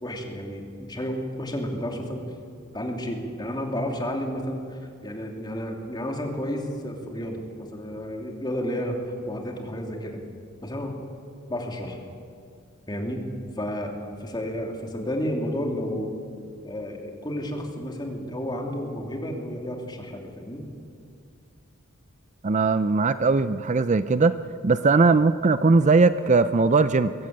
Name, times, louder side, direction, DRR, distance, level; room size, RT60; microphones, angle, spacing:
voice 1, 0.0-2.2 2.7-10.2 10.6-10.9 11.5-12.0 12.9-13.2 13.6-13.9 14.2-16.1 16.6-20.6, equal, 20° left, 1 dB, 2.8 m, -31 dB
voice 2, 22.4-24.3 24.6-27.1, right 4 dB, 35° right, 13 dB, 0.5 m, -19 dB
22.0 x 14.5 x 8.7 m, 2.3 s
head